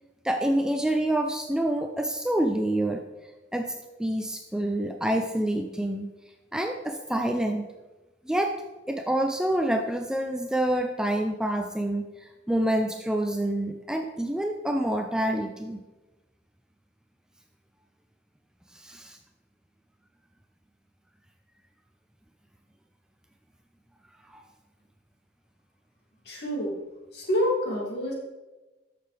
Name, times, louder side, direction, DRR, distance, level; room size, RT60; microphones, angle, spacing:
voice 1, 0.2-3.0 3.5-6.1 6.5-7.6 8.2-8.6 8.9-15.8 18.7-19.2, right 1 dB, 5° right, 4 dB, 0.4 m, -27 dB
voice 2, 26.3-26.8 27.1-28.1, equal, 60° left, -3 dB, 2.5 m, -27 dB
12.5 x 6.7 x 3.3 m, 1.1 s
head